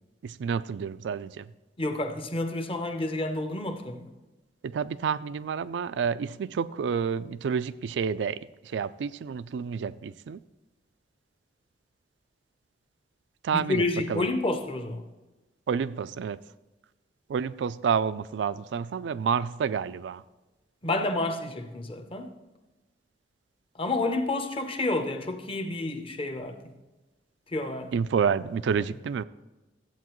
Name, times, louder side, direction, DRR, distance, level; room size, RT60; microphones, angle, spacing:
voice 1, 0.2-1.5 4.6-10.4 13.4-14.3 15.7-16.4 17.3-20.2 27.9-29.2, right 6 dB, 80° right, 0.3 m, -29 dB
voice 2, 1.8-4.1 13.5-15.0 20.8-22.3 23.8-26.7 27.5-27.9, left 2 dB, 30° left, 0.8 m, -29 dB
13.5 x 8.3 x 3.0 m
head